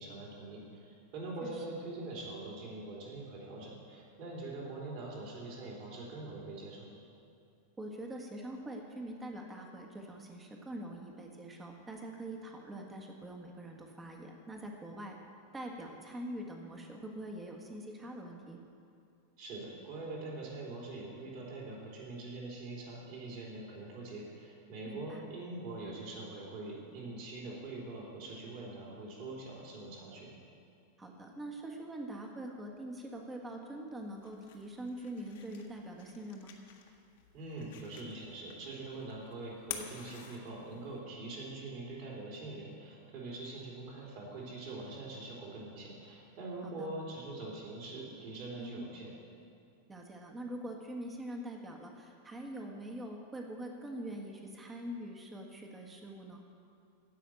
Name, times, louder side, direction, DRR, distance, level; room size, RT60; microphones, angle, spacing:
voice 1, 0.0-6.9 19.4-30.3 37.3-49.1, right 2 dB, 45° right, -3 dB, 3.4 m, -43 dB
voice 2, 7.8-15.2 15.5-18.6 24.8-25.2 31.0-36.5 46.6-46.9 48.6-48.9 49.9-56.4, right 1 dB, 15° right, 1 dB, 1.5 m, -44 dB
sound 1, 34.0-41.0, left 9 dB, 55° left, 1.4 m, -50 dB
16.0 x 5.8 x 9.0 m, 2.5 s
figure-of-eight pair, 90°, 0 cm